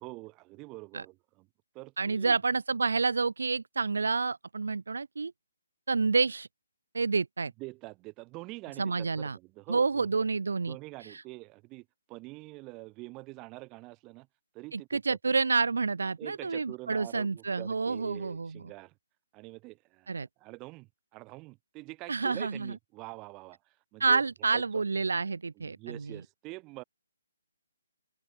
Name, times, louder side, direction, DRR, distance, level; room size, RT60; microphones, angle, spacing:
voice 1, 0.0-1.5 1.7-2.4 7.6-10.1 10.7-14.3 14.5-15.2 16.2-18.9 19.3-24.2 24.5-24.8 25.6-26.8, right 23 dB, 20° right, 4.7 m, -45 dB
voice 2, 2.0-5.3 5.9-6.5 6.9-7.5 8.8-9.4 9.7-10.8 11.1-11.2 14.7-18.6 20.1-20.3 22.1-22.7 24.0-26.0, right 4 dB, 85° right, 0.6 m, -29 dB
open air
hypercardioid pair, 160°, 0 cm